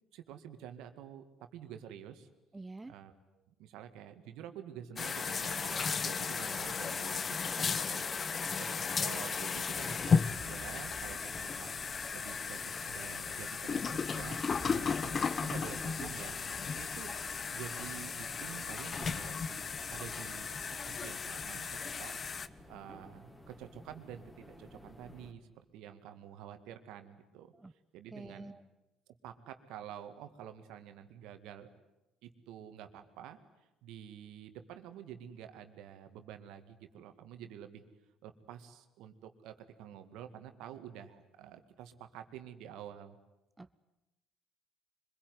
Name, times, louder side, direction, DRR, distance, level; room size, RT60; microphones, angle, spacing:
voice 1, 0.1-2.3 2.9-11.8 12.1-12.6 12.9-14.4 14.7-20.6 20.9-27.5 27.9-28.6 29.1-31.7 32.2-33.4 33.8-37.9 38.2-43.2, right 9 dB, 70° right, 8 dB, 2.0 m, -49 dB
voice 2, 2.5-2.9 27.5-27.7 28.1-28.6 43.6-43.8, right 2 dB, 20° right, 12 dB, 0.9 m, -47 dB
sound 1, 5.0-22.5, left 5 dB, 40° left, 1.0 m, -35 dB
sound 2, 9.5-25.3, equal, 15° left, 4.0 m, -51 dB
24.5 x 22.0 x 9.6 m, 0.96 s
hypercardioid pair, 60°, 0 cm